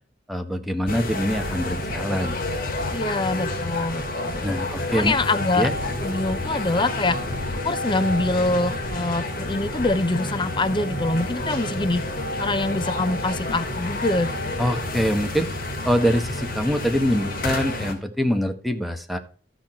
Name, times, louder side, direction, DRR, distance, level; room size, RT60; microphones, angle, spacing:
voice 1, 0.3-2.4 4.4-5.1 5.5-5.7 14.6-15.5 15.8-19.2, equal, ahead, 6 dB, 1.4 m, -24 dB
sound 1, 0.9-17.9, left 2 dB, 55° left, 2.5 m, -29 dB
voice 2, 2.9-4.6 4.9-5.7 6.0-7.2 7.6-12.0 12.4-14.6, left 2 dB, 25° left, 12 dB, 0.7 m, -24 dB
13.0 x 6.1 x 4.4 m, 0.40 s
head